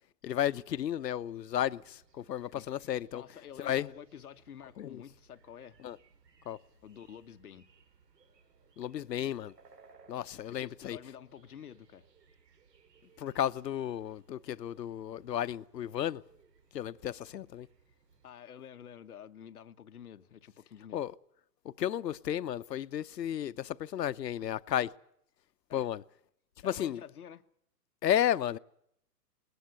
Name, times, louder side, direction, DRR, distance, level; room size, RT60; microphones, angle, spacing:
voice 1, 0.2-3.2 3.6-3.9 4.8-5.0 5.8-6.0 6.5-6.6 8.8-9.5 10.1-11.0 13.2-16.2 16.7-17.7 20.9-21.1 21.6-24.9 25.7-26.0 26.6-27.0 28.0-28.6, left 10 dB, 80° left, 0.9 m, -33 dB
sound 1, 0.7-18.3, right 5 dB, 90° right, 6.3 m, -64 dB
voice 2, 3.1-5.8 6.8-7.7 10.5-12.0 18.2-21.0 25.7-25.9 26.6-27.4, left 9 dB, 65° left, 1.3 m, -49 dB
21.0 x 19.5 x 8.1 m
hypercardioid pair, 175°, 48 cm